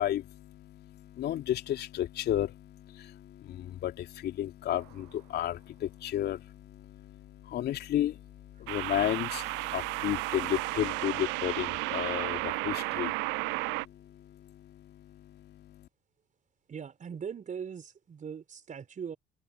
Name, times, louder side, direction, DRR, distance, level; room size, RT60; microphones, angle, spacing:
voice 1, 0.0-15.9, left 12 dB, 55° left, 3.2 m, -34 dB
sound 1, 4.7-5.0 8.7-13.9, right 27 dB, 65° right, 0.7 m, -33 dB
voice 2, 16.7-19.2, right 7 dB, 40° right, 4.7 m, -40 dB
open air
figure-of-eight pair, 55°, 20 cm